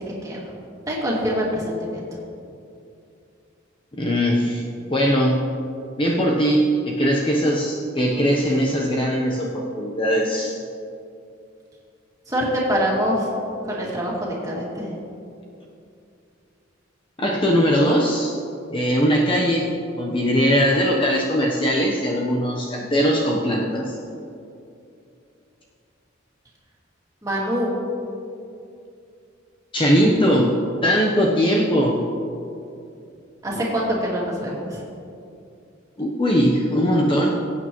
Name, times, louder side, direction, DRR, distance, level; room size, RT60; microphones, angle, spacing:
voice 1, 0.9-2.0 12.3-13.3 13.6-14.9 27.2-27.7 33.4-34.8, equal, 15° right, -5 dB, 2.4 m, -24 dB
voice 2, 3.9-4.6 4.9-5.5 6.0-10.6 17.2-18.3 18.7-19.7 20.0-24.0 29.7-30.5 30.8-32.0 36.0-37.3, equal, 25° left, -2 dB, 0.9 m, -20 dB
21.0 x 8.7 x 3.1 m, 2.6 s
head